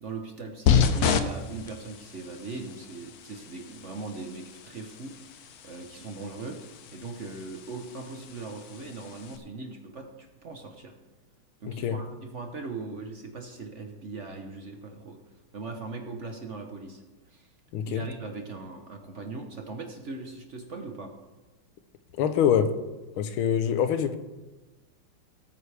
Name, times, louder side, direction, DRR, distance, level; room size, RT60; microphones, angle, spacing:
voice 1, 0.0-5.1 5.6-6.6 6.9-10.9 11.6-15.2 15.5-17.5 17.9-21.1, right 3 dB, 45° right, 1.1 m, -40 dB
sound 1, 0.7-9.4, left 6 dB, 65° left, 1.0 m, -31 dB
voice 2, 11.7-12.0 17.7-18.1 22.1-22.8 23.2-24.2, left 8 dB, 85° left, 1.6 m, -25 dB
18.0 x 9.3 x 3.4 m
omnidirectional pair, 2.2 m